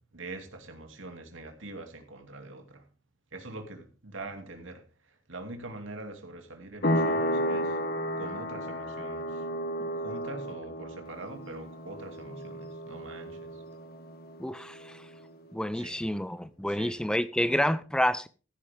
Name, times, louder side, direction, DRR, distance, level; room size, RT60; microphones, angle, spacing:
voice 1, 0.0-2.8 3.3-4.8 5.1-7.8 8.2-9.5 10.0-13.6 15.7-16.0 16.7-17.0, right 2 dB, 75° right, 2.7 m, -43 dB
sound 1, 6.8-15.2, equal, 50° left, 1.6 m, -33 dB
voice 2, 14.4-15.0 15.5-18.3, left 1 dB, 5° left, 0.5 m, -29 dB
15.0 x 10.5 x 3.6 m
head